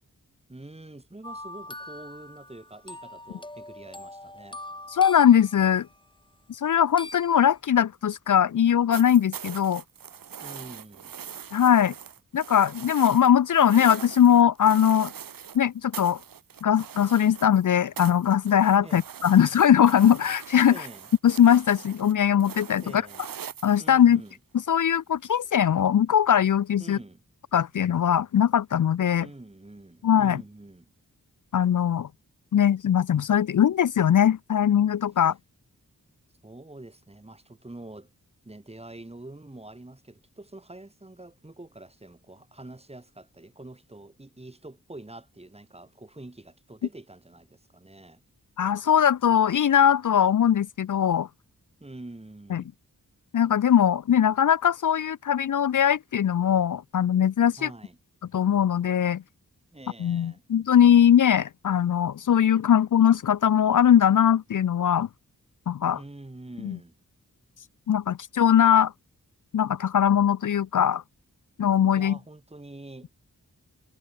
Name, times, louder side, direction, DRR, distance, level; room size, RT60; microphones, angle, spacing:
voice 1, 0.5-4.6 10.4-11.1 18.8-19.0 20.7-21.1 22.8-23.2 23.8-24.4 26.8-27.2 29.2-30.9 35.2-35.3 36.4-38.1 38.4-48.2 51.8-52.7 57.6-58.0 59.7-60.4 65.9-67.0 71.9-73.1, right 2 dB, 20° right, 2.2 m, -45 dB
sound 1, 1.2-6.0 7.0-7.5, left 1 dB, 15° left, 3.7 m, -43 dB
voice 2, 4.9-5.9 6.5-9.8 11.5-11.9 12.3-15.1 15.5-16.2 16.6-20.9 21.2-23.0 23.6-24.2 24.7-27.0 27.5-29.3 30.0-30.4 31.5-32.1 32.5-35.3 48.6-51.3 52.5-52.6 53.3-57.7 58.3-59.2 60.0-65.1 65.7-66.0 66.6-66.8 67.9-68.9 69.5-71.0 71.6-72.2, left 9 dB, 65° left, 0.6 m, -21 dB
sound 2, 8.9-15.6 15.9-17.7 18.0-24.3 25.5-25.6, right 8 dB, 75° right, 1.1 m, -42 dB
wide cardioid pair, 70°, 34 cm